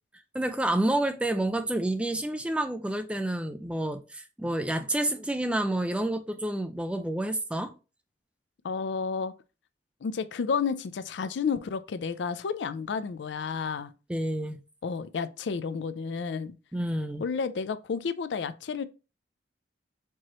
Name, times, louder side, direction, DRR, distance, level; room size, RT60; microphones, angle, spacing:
voice 1, 0.3-7.7 14.1-14.6 16.7-17.2, right 1 dB, 5° right, 0.4 m, -29 dB
voice 2, 8.6-9.3 10.0-13.9 14.8-16.6 17.2-18.8, left 5 dB, 80° left, 0.4 m, -31 dB
4.6 x 3.0 x 2.9 m
head